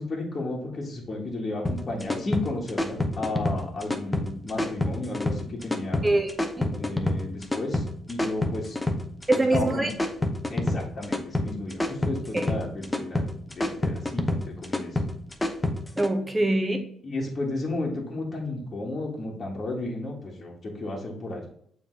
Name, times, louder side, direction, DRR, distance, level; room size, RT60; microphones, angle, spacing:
voice 1, 0.0-6.0 6.7-8.8 9.3-9.9 10.5-13.2 13.5-15.0 16.4-16.5 17.0-21.5, left 2 dB, 35° left, -3 dB, 1.6 m, -33 dB
sound 1, 1.7-16.1, left 2 dB, 15° left, 0.8 m, -28 dB
voice 2, 6.0-6.8 9.3-9.9 12.3-12.4 16.0-16.9, right 2 dB, 15° right, 2 dB, 1.2 m, -24 dB
7.1 x 3.5 x 3.8 m, 0.65 s
cardioid pair, 90°, 0 cm